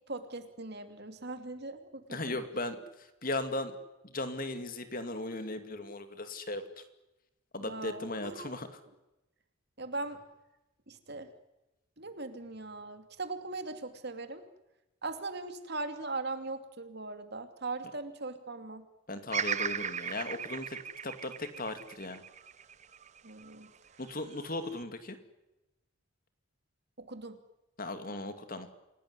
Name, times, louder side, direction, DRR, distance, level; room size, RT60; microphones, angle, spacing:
voice 1, 0.1-2.4 7.6-8.6 9.8-10.2 10.9-11.3 12.0-14.4 15.0-18.8 23.2-23.7 27.0-27.4, right 3 dB, 50° right, 8 dB, 2.6 m, -40 dB
voice 2, 2.1-3.7 4.0-6.6 7.5-8.8 19.1-22.2 24.0-25.2 27.8-28.7, left 2 dB, 40° left, 9 dB, 2.5 m, -37 dB
Bird vocalization bird call bird song, 19.3-23.5 24.1-24.8, right 7 dB, 35° right, 0.8 m, -37 dB
28.0 x 17.5 x 9.7 m, 0.97 s
head